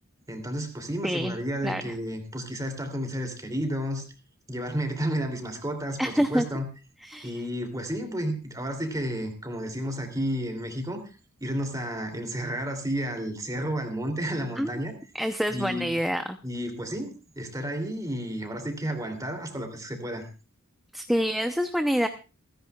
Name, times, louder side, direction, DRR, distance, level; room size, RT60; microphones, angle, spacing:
voice 1, 0.3-4.0 4.5-6.7 7.2-11.0 11.4-14.9 15.5-15.9 16.4-20.2, equal, 15° right, 5 dB, 2.7 m, -31 dB
voice 2, 1.0-1.4 1.6-1.9 6.0-6.5 7.0-7.3 14.6-14.8 15.1-16.4 20.9-22.1, equal, ahead, 6 dB, 0.6 m, -27 dB
28.0 x 10.0 x 2.3 m, 0.32 s
head